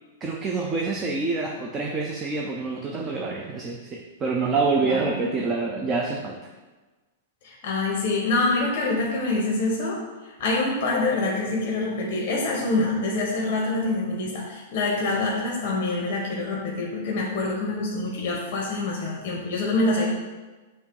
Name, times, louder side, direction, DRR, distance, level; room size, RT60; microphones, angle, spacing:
voice 1, 0.2-6.5, right 4 dB, 15° right, 1 dB, 0.4 m, -27 dB
voice 2, 4.8-5.1 7.4-10.0 10.4-20.0, left 2 dB, 30° left, -2 dB, 1.0 m, -25 dB
7.3 x 2.9 x 4.6 m, 1.2 s
supercardioid pair, 170°, 0 cm